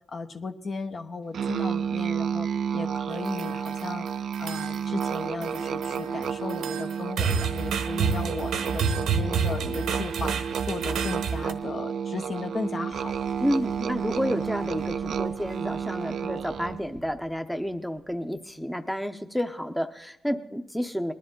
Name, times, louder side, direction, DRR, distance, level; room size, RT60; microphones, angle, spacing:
voice 1, 0.1-2.5 2.7-4.1 4.4-13.1, left 4 dB, 50° left, 6 dB, 1.1 m, -36 dB
Musical instrument, 1.3-16.9, right 7 dB, 65° right, 0.4 m, -31 dB
sound 1, 3.1-3.9 4.3-5.2 5.4-11.5, right 6 dB, 85° right, 1.0 m, -29 dB
Boom, 12.9-18.5, left 1 dB, 90° left, 2.6 m, -49 dB
voice 2, 13.4-21.1, equal, 5° left, 6 dB, 0.8 m, -30 dB
19.5 x 10.5 x 3.8 m, 0.81 s
cardioid pair, 65°, 0 cm